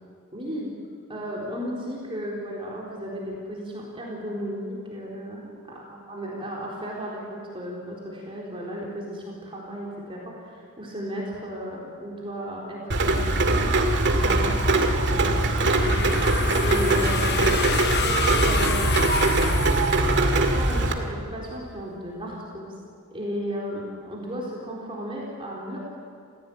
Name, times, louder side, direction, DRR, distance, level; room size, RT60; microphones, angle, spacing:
voice 1, 0.3-0.7 1.1-14.6 14.9-15.4 15.8-19.0 20.3-22.7 23.1-25.8, equal, 25° right, -4 dB, 4.2 m, -34 dB
Rain, 12.9-20.9, right 2 dB, 55° right, 2.2 m, -22 dB
sound 1, 15.6-20.5, left 7 dB, 50° left, 1.1 m, -30 dB
29.5 x 16.0 x 8.8 m, 2.3 s
head